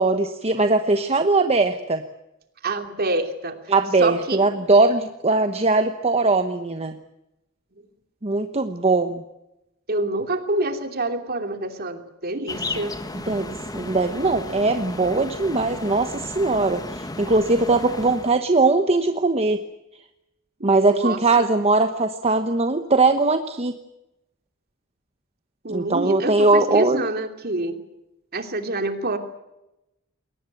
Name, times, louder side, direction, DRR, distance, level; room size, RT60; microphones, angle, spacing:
voice 1, 0.0-2.0 3.7-7.0 8.2-9.2 13.3-19.6 20.6-23.8 25.7-27.0, right 3 dB, 30° right, 7 dB, 1.1 m, -20 dB
voice 2, 2.6-3.6 4.0-4.4 9.9-12.9 20.6-21.5 25.6-27.8 28.3-29.2, right 2 dB, 50° right, 6 dB, 2.9 m, -27 dB
sound 1, 12.5-18.4, left 2 dB, 20° left, 1.6 m, -34 dB
22.0 x 19.0 x 9.3 m, 0.91 s
head